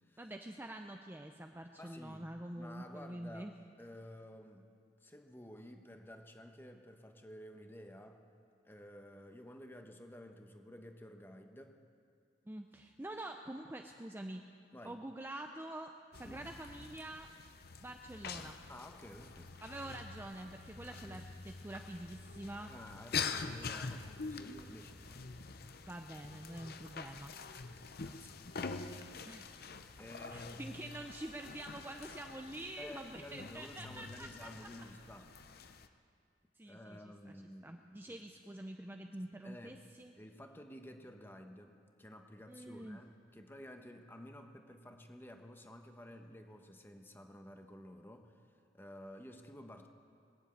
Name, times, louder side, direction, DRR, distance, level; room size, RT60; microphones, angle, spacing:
voice 1, 0.2-3.5 12.5-14.4 14.8-17.3 17.8-18.6 19.6-22.7 25.9-27.3 29.3-29.5 30.3-34.7 36.6-40.1 42.5-43.0, right 1 dB, 10° right, 4 dB, 0.5 m, -46 dB
voice 2, 1.8-2.3 2.6-4.7 5.0-8.2 8.6-11.8 14.7-15.0 16.2-16.5 18.7-19.6 19.9-20.1 20.9-21.2 22.7-25.2 28.0-28.4 30.0-30.6 32.8-35.7 36.6-37.8 38.1-38.2 39.4-39.8 40.2-48.3 48.7-49.9, left 1 dB, 10° left, 5 dB, 1.0 m, -52 dB
sound 1, 16.1-35.9, left 5 dB, 55° left, 0.7 m, -45 dB
21.5 x 7.5 x 8.6 m, 2.4 s
head